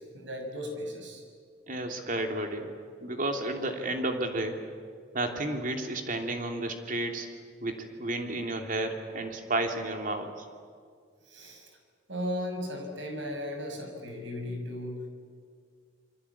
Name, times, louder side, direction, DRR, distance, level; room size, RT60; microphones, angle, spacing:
voice 1, 0.1-1.2 11.3-11.7 12.1-15.1, left 1 dB, 80° right, 4 dB, 6.3 m, -36 dB
voice 2, 1.7-2.7 3.0-4.6 5.1-7.3 7.6-10.5, right 2 dB, 45° right, 4 dB, 3.0 m, -32 dB
27.5 x 23.5 x 8.6 m, 2.1 s
head